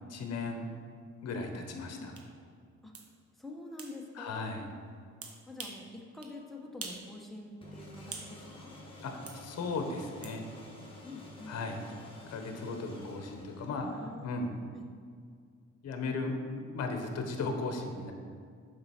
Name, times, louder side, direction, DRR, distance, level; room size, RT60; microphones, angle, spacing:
voice 1, 0.1-0.7 1.2-2.2 4.2-4.7 9.0-10.4 11.5-11.8 12.3-14.6 15.8-18.1, left 3 dB, 55° left, 4 dB, 1.0 m, -36 dB
sound 1, 2.2-2.3 2.9-3.1 3.8-3.9 5.2-5.8 6.2-6.4 6.8-7.1 7.4-8.3 9.3-9.4 10.2-10.4, right 4 dB, 50° right, 1.1 m, -44 dB
voice 2, 3.4-4.6 5.5-8.7 11.0-11.6 13.8-14.9, left 2 dB, ahead, 0 dB, 1.1 m, -46 dB
sound 2, 7.6-14.1, left 1 dB, 20° left, 1.7 m, -50 dB
7.6 x 5.4 x 4.4 m, 2.1 s
cardioid pair, 90°, 30 cm